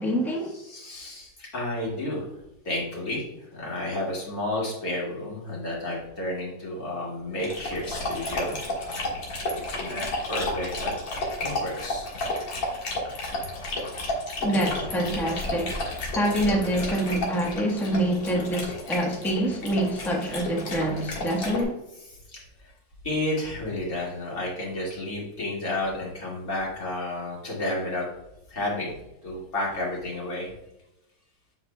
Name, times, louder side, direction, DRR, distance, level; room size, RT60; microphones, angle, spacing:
voice 1, 0.0-0.5 14.4-15.8 16.1-21.8, right 1 dB, ahead, 0.7 m, -26 dB
voice 2, 0.7-2.3 2.6-8.6 8.9-9.2 9.5-10.9 11.4-12.1 22.3-22.7 23.0-28.1 28.5-28.9 29.2-30.5, left 1 dB, 50° left, 2.5 m, -31 dB
Dog, 7.4-21.6, left 1 dB, 90° left, 2.4 m, -32 dB
7.7 x 5.5 x 2.2 m
omnidirectional pair, 2.1 m